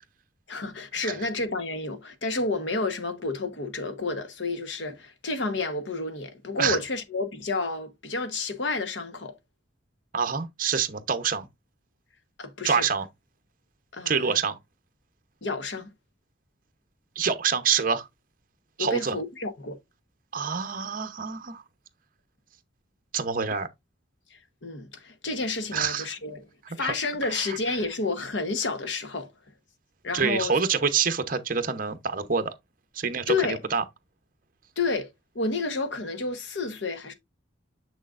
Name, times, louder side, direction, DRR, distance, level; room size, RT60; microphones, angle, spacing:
voice 1, 0.5-9.3 12.4-12.9 13.9-14.4 15.4-15.9 18.8-19.8 24.3-29.3 30.0-30.6 33.3-33.6 34.8-35.1 35.3-37.1, left 3 dB, 70° left, 1.1 m, -30 dB
voice 2, 10.1-11.5 12.6-13.1 14.1-14.6 17.2-18.1 18.8-19.1 20.3-21.6 23.1-23.7 25.7-26.1 26.8-26.9 27.4-27.6 30.1-32.5 32.9-33.3 33.7-33.8, right 6 dB, 45° right, 0.8 m, -26 dB
6.8 x 6.3 x 2.5 m
head